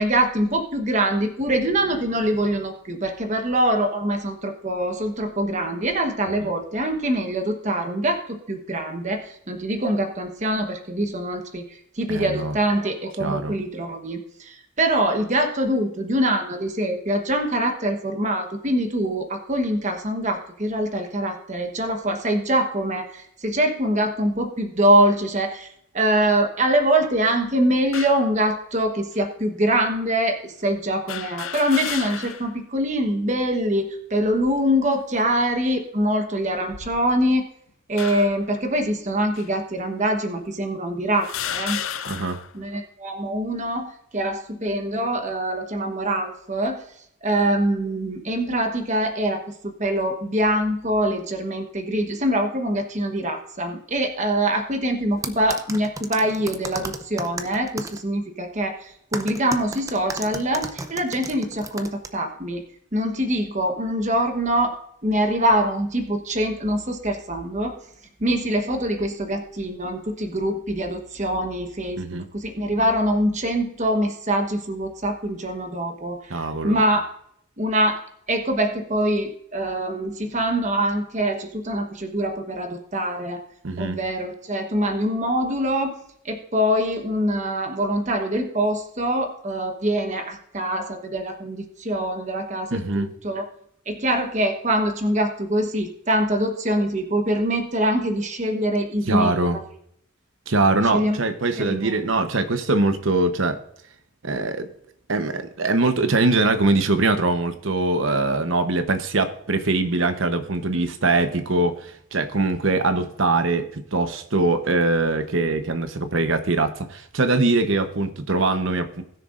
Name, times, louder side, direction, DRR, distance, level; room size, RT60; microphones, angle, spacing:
voice 1, 0.0-11.6 12.0-25.7 25.9-37.4 37.9-41.8 42.5-46.8 47.2-62.6 62.9-64.8 65.0-67.7 68.2-72.0 72.3-77.0 77.6-78.0 78.3-83.4 83.8-86.0 86.2-93.4 93.9-99.3 100.9-101.2 101.6-101.9, right 1 dB, 35° right, 4 dB, 1.1 m, -24 dB
voice 2, 12.1-12.6 13.2-13.5 42.1-42.4 72.0-72.3 76.3-76.8 83.6-84.0 92.7-93.1 99.1-99.6 100.5-103.6 104.2-104.7 105.1-119.0, right 2 dB, 70° right, 9 dB, 0.9 m, -22 dB
sound 1, 27.9-28.3 29.1-29.2 31.1-32.5 33.0-33.1 34.2-34.7 35.3-35.6 36.5-37.4 38.0-38.5 39.4-39.5 40.4-40.5 41.2-42.5, left 9 dB, 75° left, 0.6 m, -33 dB
sound 2, 55.2-58.0 59.1-62.1, right 3 dB, 15° right, 0.6 m, -33 dB
20.0 x 6.7 x 2.5 m, 0.71 s
head